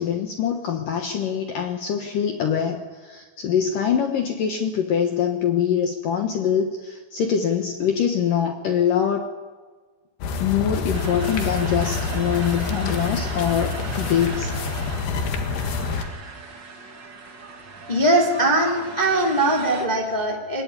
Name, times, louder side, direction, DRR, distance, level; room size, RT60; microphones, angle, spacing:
voice 1, 0.0-9.3 10.4-14.5, left 8 dB, 80° left, 4 dB, 1.9 m, -24 dB
sound 1, 10.2-16.0, left 4 dB, 60° left, 3.4 m, -27 dB
sound 2, 10.9-19.9, right 4 dB, 85° right, 1.0 m, -38 dB
voice 2, 17.9-20.6, right 1 dB, 15° left, 0 dB, 1.6 m, -21 dB
22.0 x 18.0 x 9.8 m, 1.4 s
omnidirectional pair, 5.9 m